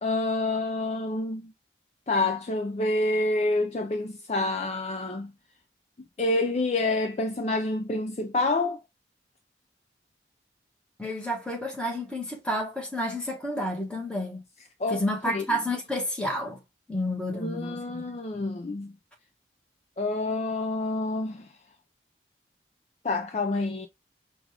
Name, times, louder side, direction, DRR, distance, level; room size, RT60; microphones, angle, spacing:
voice 1, 0.0-1.5 2.1-5.3 6.2-8.8 14.8-15.4 17.3-18.9 20.0-21.5 23.0-23.9, left 2 dB, 35° left, 0.4 m, -28 dB
voice 2, 11.0-14.4 14.9-16.6 16.9-18.5, equal, 5° left, 1.1 m, -30 dB
5.0 x 2.3 x 3.3 m
head